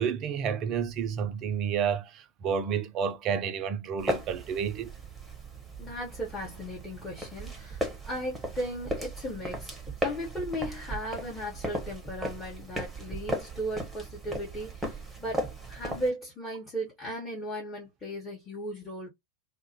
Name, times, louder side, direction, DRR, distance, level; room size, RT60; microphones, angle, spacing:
voice 1, 0.0-4.9, right 7 dB, 35° right, 0.4 m, -30 dB
sound 1, 4.0-16.1, right 1 dB, 10° right, 0.8 m, -36 dB
voice 2, 5.8-9.7 10.0-19.1, equal, 20° left, 1.0 m, -36 dB
2.4 x 2.0 x 2.7 m
figure-of-eight pair, 90°, 0 cm